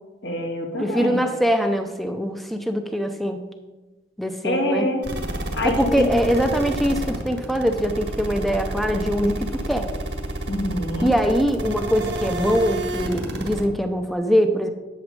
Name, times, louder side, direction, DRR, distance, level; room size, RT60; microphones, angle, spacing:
voice 1, 0.2-1.2 4.4-5.0 5.5-6.1 10.5-11.1, left 1 dB, 70° left, 0 dB, 2.3 m, -25 dB
voice 2, 0.8-3.4 4.2-4.9 5.6-9.9 11.0-14.7, equal, ahead, 6 dB, 0.7 m, -22 dB
sound 1, 5.0-13.7, right 1 dB, 80° right, 1.7 m, -29 dB
11.5 x 7.3 x 5.3 m, 1.1 s
head